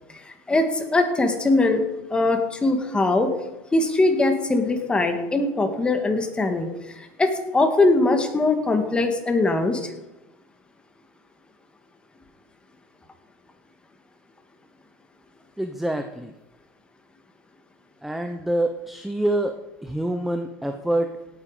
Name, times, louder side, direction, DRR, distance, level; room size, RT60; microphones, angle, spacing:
voice 1, 0.1-1.8 2.1-3.3 3.7-9.9, left 2 dB, 15° left, 5 dB, 2.0 m, -21 dB
voice 2, 15.6-16.3 18.0-21.2, right 1 dB, 5° right, 6 dB, 0.8 m, -26 dB
17.5 x 9.1 x 5.1 m, 0.98 s
supercardioid pair, 130°, 7 cm